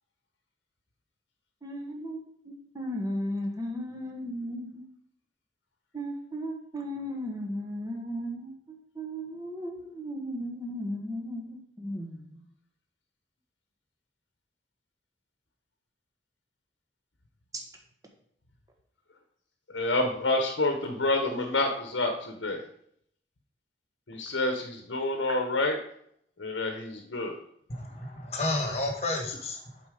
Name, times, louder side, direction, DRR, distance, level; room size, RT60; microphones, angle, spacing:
voice 1, 1.6-4.8 5.9-12.4 17.5-17.6, equal, 20° right, 0 dB, 1.2 m, -36 dB
voice 2, 19.7-22.6 24.1-25.8 26.4-27.4, left 2 dB, 90° left, 5 dB, 0.9 m, -28 dB
voice 3, 27.7-29.8, left 2 dB, 35° left, 3 dB, 1.4 m, -31 dB
7.5 x 4.4 x 4.9 m, 0.69 s
head